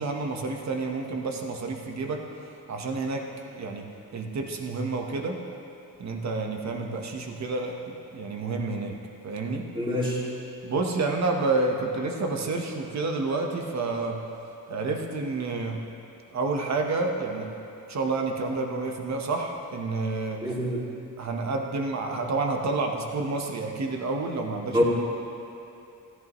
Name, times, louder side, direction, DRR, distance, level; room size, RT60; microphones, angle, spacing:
voice 1, 0.0-2.2 2.7-3.3 3.5-3.8 4.1-5.4 6.0-9.0 9.2-9.7 10.6-14.2 14.7-15.8 16.3-17.5 17.9-20.4 21.2-24.8, right 3 dB, 50° right, 2 dB, 1.3 m, -29 dB
voice 2, 9.7-10.2 20.4-20.8 24.7-24.8, equal, 15° right, -6 dB, 2.5 m, -25 dB
16.0 x 11.0 x 3.2 m, 2.7 s
cardioid pair, 125°, 36 cm